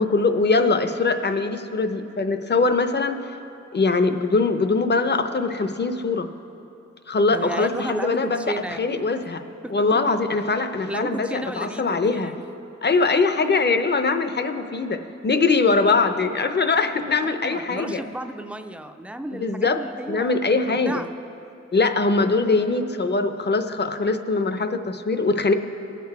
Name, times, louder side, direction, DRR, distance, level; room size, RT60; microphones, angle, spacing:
voice 1, 0.0-3.3 3.7-6.3 7.1-9.4 9.7-12.3 12.8-18.0 19.3-19.8 20.1-21.0 21.7-25.5, left 3 dB, 35° left, 9 dB, 0.6 m, -22 dB
voice 2, 7.3-9.0 9.6-10.0 10.9-12.4 13.0-13.2 17.2-20.4 20.6-21.1, right 1 dB, 5° right, 8 dB, 0.4 m, -33 dB
19.5 x 6.8 x 4.7 m, 2.9 s
wide cardioid pair, 115°, 29 cm